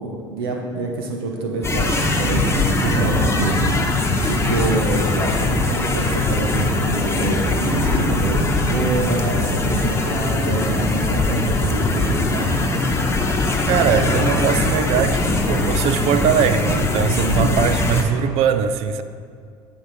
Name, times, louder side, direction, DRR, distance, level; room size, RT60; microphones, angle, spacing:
voice 1, 0.0-12.6 17.2-17.6, right 3 dB, 85° right, 0.9 m, -26 dB
sound 1, 1.6-18.0, left 2 dB, 20° left, 1.0 m, -21 dB
voice 2, 13.7-19.0, right 8 dB, 60° right, 0.5 m, -21 dB
9.1 x 3.5 x 5.6 m
hypercardioid pair, 75°, 12 cm